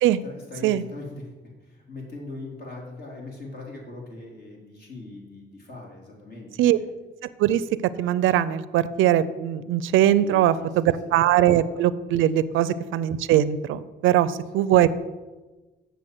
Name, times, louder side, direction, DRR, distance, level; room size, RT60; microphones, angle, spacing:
voice 1, 0.2-1.3 1.6-6.5 10.2-11.1 12.5-12.6, left 2 dB, 50° left, -1 dB, 3.5 m, -40 dB
voice 2, 8.0-15.0, right 11 dB, 85° right, 16 dB, 0.5 m, -21 dB
7.8 x 6.8 x 7.7 m, 1.2 s
cardioid pair, 90°, 20 cm